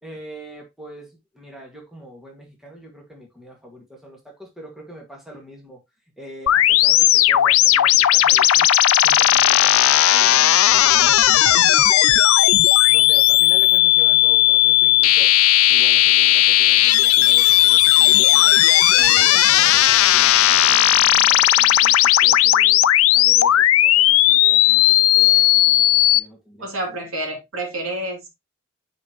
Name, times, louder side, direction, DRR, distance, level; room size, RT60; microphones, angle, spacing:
voice 1, 0.0-5.8 6.2-8.7 9.0-12.3 12.9-15.4 15.7-18.6 18.9-27.0, equal, ahead, 2.0 m, -42 dB
sound 1, 6.5-26.2, left 14 dB, 85° left, 0.4 m, -15 dB
voice 2, 26.6-28.3, right 1 dB, 80° right, 2.9 m, -28 dB
9.0 x 4.4 x 3.0 m
head